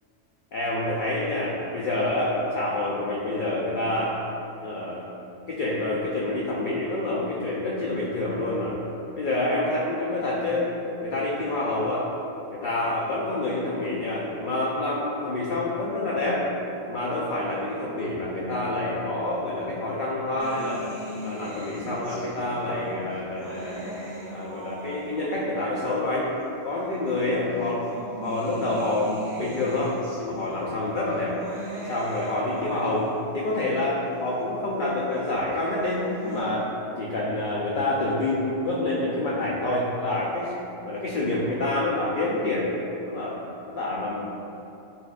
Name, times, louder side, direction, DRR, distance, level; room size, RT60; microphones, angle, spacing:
voice 1, 0.5-4.2 4.6-5.0 5.5-8.8 9.1-10.7 11.0-12.1 12.5-16.5 16.9-20.8 21.2-23.9 24.3-26.3 26.6-27.9 28.2-31.4 31.9-36.7 37.0-40.5 40.9-42.7 43.1-43.4 43.7-44.2, left 2 dB, 60° left, -5 dB, 0.5 m, -27 dB
sound 1, 20.4-25.5 26.4-26.5 27.6-33.5 35.6-36.4, equal, 40° right, 1.0 m, -40 dB
6.7 x 2.4 x 2.3 m, 2.9 s
omnidirectional pair, 1.2 m